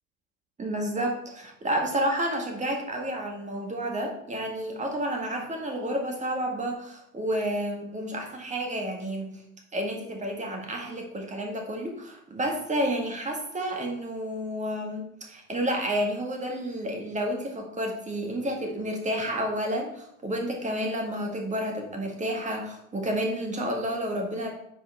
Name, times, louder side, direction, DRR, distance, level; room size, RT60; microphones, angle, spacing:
voice 1, 0.6-9.3 9.7-24.5, right 1 dB, 15° right, 2 dB, 1.7 m, -30 dB
9.9 x 4.5 x 3.5 m, 0.76 s
figure-of-eight pair, 70°, 40 cm